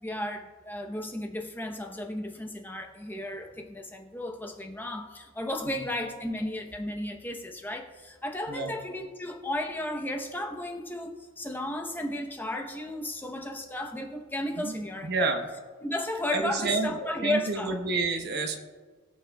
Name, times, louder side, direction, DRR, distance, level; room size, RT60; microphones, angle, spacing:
voice 1, 0.0-15.3 15.8-17.8, left 1 dB, 10° left, 3 dB, 0.8 m, -34 dB
voice 2, 14.6-15.4 16.3-18.6, right 3 dB, 50° right, 5 dB, 1.0 m, -29 dB
22.0 x 7.3 x 2.3 m, 1.5 s
head